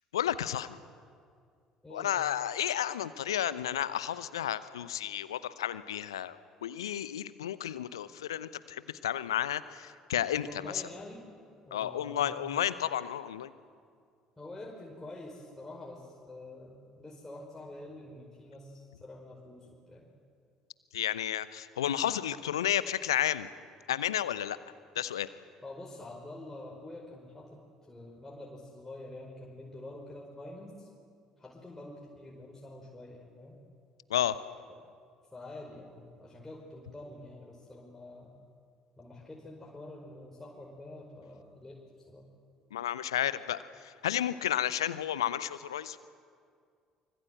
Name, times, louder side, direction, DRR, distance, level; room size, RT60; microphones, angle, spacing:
voice 1, 0.1-0.8 1.9-6.4 6.6-10.8 11.7-13.5 20.9-23.5 23.9-24.6 24.9-25.3 34.1-34.4 42.7-46.1, left 11 dB, 75° left, 16 dB, 0.8 m, -32 dB
voice 2, 1.8-2.2 10.5-11.2 11.6-12.5 14.4-20.1 25.6-30.9 31.4-33.6 35.3-38.4 39.0-41.8 42.1-42.3, left 1 dB, 15° left, -3 dB, 5.1 m, -47 dB
25.0 x 24.5 x 7.9 m, 2.2 s
figure-of-eight pair, 55°, 3 cm